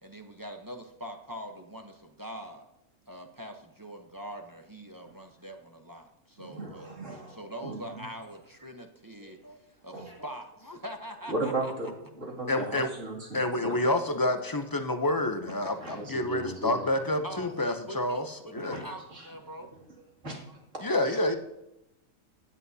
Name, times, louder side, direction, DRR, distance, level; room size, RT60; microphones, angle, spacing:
voice 1, 0.0-2.6 3.1-6.9 7.3-9.4 9.8-11.7 17.2-19.7, equal, 20° right, 3 dB, 0.7 m, -43 dB
voice 2, 6.4-8.0 9.2-9.3 9.9-10.2 11.3-11.9 12.2-13.8 15.8-17.1 18.7-18.8 19.1-19.3 20.2-20.6 21.0-21.4, right 2 dB, 65° right, -2 dB, 2.8 m, -36 dB
voice 3, 12.5-12.9 13.3-18.2 18.5-18.8 20.8-21.3, left 1 dB, 30° left, 7 dB, 0.4 m, -28 dB
15.5 x 9.8 x 2.7 m, 0.88 s
omnidirectional pair, 1.4 m